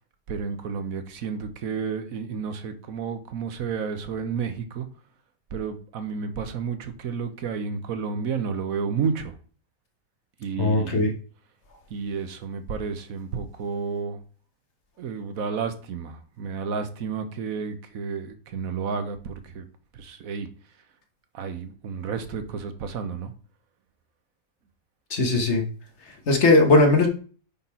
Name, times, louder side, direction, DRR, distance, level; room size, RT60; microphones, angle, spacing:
voice 1, 0.3-4.9 5.5-9.3 10.4-11.0 11.9-14.2 15.0-19.7 19.9-20.5 21.3-23.3, right 6 dB, 90° right, 1.4 m, -31 dB
voice 2, 10.6-11.1 25.1-25.6 26.3-27.1, left 2 dB, 55° left, 1.6 m, -18 dB
9.3 x 4.1 x 4.3 m
omnidirectional pair, 1.4 m